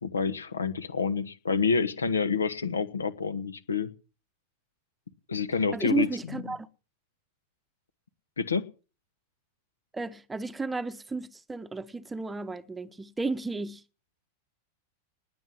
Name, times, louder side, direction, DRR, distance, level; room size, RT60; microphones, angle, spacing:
voice 1, 0.0-3.9 5.3-6.4 8.4-8.7, left 5 dB, 75° left, 1.3 m, -28 dB
voice 2, 5.7-6.7 9.9-13.8, right 3 dB, 10° right, 0.9 m, -33 dB
19.5 x 8.0 x 7.2 m
figure-of-eight pair, 90°, 0 cm